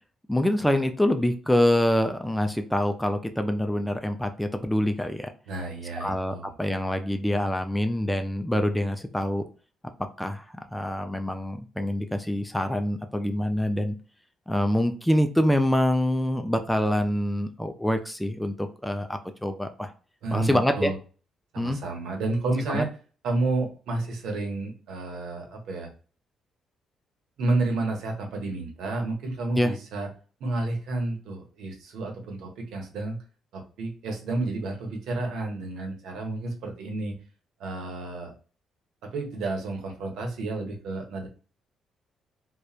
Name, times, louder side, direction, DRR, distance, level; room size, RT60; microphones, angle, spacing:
voice 1, 0.3-5.3 6.0-9.5 10.2-14.0 14.5-19.9 20.3-20.9 21.6-21.8 22.7-22.9 29.5-29.7, left 1 dB, 5° left, 7 dB, 0.4 m, -25 dB
voice 2, 5.5-6.5 20.2-21.0 21.5-22.9 23.2-25.9 27.4-30.1 30.4-33.2 33.5-37.2 37.6-38.3 39.0-41.3, right 2 dB, 80° right, 2 dB, 0.9 m, -30 dB
2.9 x 2.1 x 2.3 m, 0.38 s
cardioid pair, 90°, 0 cm